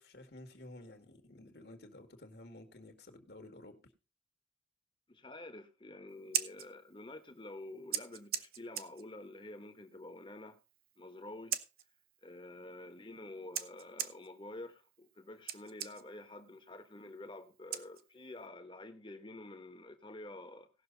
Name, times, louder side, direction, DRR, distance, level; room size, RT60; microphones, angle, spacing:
voice 1, 0.0-3.9, left 1 dB, 60° left, 1.9 m, -53 dB
voice 2, 5.1-10.6 11.0-11.6 12.2-20.7, left 2 dB, 25° left, 1.3 m, -49 dB
Scissors, 6.1-18.5, right 10 dB, 55° right, 0.9 m, -44 dB
18.0 x 6.4 x 3.9 m
head